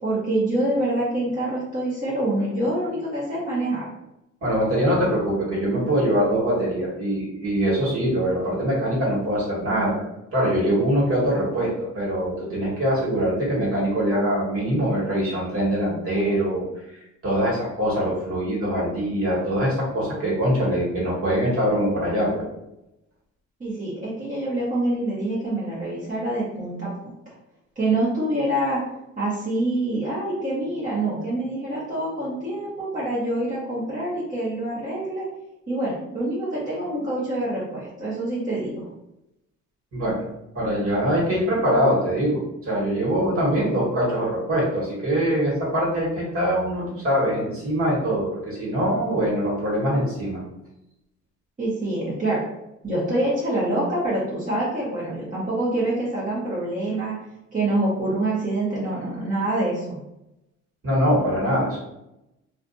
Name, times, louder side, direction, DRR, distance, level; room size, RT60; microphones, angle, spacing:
voice 1, 0.0-3.8 23.6-26.9 27.2-27.3 27.8-28.8 29.2-35.2 35.7-38.9 51.6-52.4 52.8-57.1 57.5-60.0, right 1 dB, 25° right, -8 dB, 0.9 m, -26 dB
voice 2, 4.4-10.0 10.3-16.6 16.9-22.4 39.9-40.2 40.5-50.4 60.8-61.8, equal, 50° right, -5 dB, 1.4 m, -23 dB
2.5 x 2.3 x 2.6 m, 0.87 s
cardioid pair, 90°, 30 cm